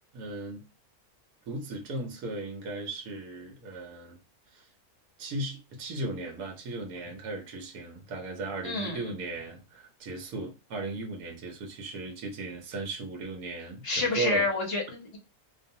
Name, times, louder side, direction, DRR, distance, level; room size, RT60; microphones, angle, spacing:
voice 1, 0.1-0.6 1.5-4.2 4.5-4.7 5.2-14.5, right 2 dB, 75° right, 1.1 m, -36 dB
voice 2, 8.6-9.0 13.8-15.2, left 3 dB, 50° left, 0.9 m, -28 dB
2.5 x 2.3 x 2.6 m
omnidirectional pair, 1.6 m